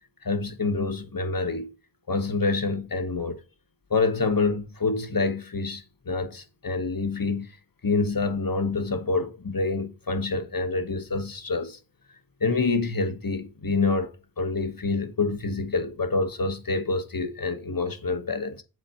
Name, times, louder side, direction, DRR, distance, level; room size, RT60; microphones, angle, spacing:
voice 1, 0.2-1.7 2.1-3.4 3.9-7.5 7.8-11.8 12.4-18.6, left 3 dB, 60° left, 1.3 m, -27 dB
7.6 x 4.1 x 5.4 m
wide cardioid pair, 50°, 39 cm